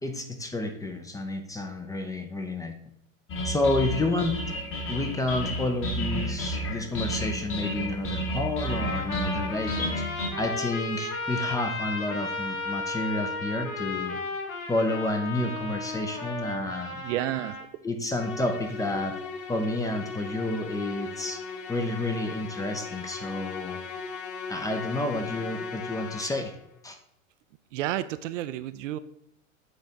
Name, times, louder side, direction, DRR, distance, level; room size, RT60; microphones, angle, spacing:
voice 1, 0.0-2.8 3.4-4.4 4.9-10.0 10.4-14.2 14.7-17.0 17.8-19.2 19.5-21.4 21.7-23.8 24.5-26.5 26.8-27.0, left 2 dB, 10° left, 5 dB, 0.5 m, -30 dB
sound 1, 3.3-10.3, equal, 30° left, 1.3 m, -31 dB
Trumpet, 8.6-17.7, left 3 dB, 90° left, 1.1 m, -34 dB
voice 2, 17.0-17.6 27.7-29.0, right 13 dB, 60° right, 13 dB, 0.5 m, -30 dB
Musical instrument, 18.1-26.7, left 5 dB, 55° left, 1.1 m, -38 dB
7.7 x 3.4 x 3.9 m, 0.75 s
hypercardioid pair, 95°, 41 cm